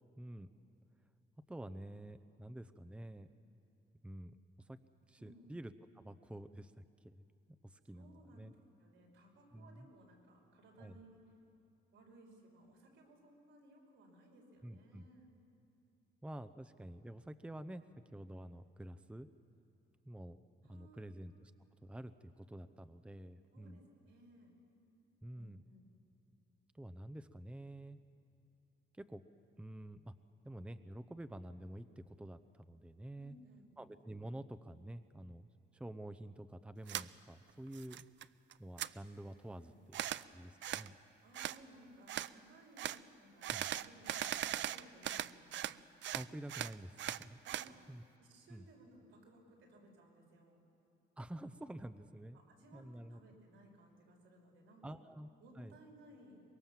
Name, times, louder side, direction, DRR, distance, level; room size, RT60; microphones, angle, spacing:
voice 1, 0.2-0.5 1.5-3.3 4.0-4.8 5.1-7.2 7.6-8.5 9.5-9.9 10.8-11.0 14.6-15.1 16.2-17.8 18.1-19.3 20.0-20.4 20.7-21.5 21.8-23.8 25.2-25.6 26.7-28.0 28.9-29.2 29.6-30.1 30.4-31.9 32.2-33.3 33.8-35.5 35.7-38.1 38.6-39.7 40.2-41.0 43.5-43.7 46.1-47.4 47.9-48.0 48.5-48.7 51.2-52.4 52.7-53.2 54.8-55.3 55.6-55.7, right 1 dB, 5° right, 11 dB, 0.7 m, -49 dB
voice 2, 5.2-5.5 7.9-8.5 8.8-11.2 11.9-15.3 20.6-21.1 23.5-24.5 25.3-25.9 33.2-33.7 39.7-39.8 41.2-45.8 47.4-47.9 48.2-50.6 52.3-55.0 55.4-56.4, right 1 dB, 85° right, 0 dB, 5.9 m, -61 dB
sound 1, 36.9-37.1 37.5-38.2 38.5-38.9 39.9-40.2 40.6-40.9 41.3-41.6 42.1-42.3 42.8-43.0 43.4-45.8 46.0-47.7, right 12 dB, 70° right, 0.6 m, -39 dB
24.5 x 21.5 x 7.4 m, 2.8 s
cardioid pair, 90°, 20 cm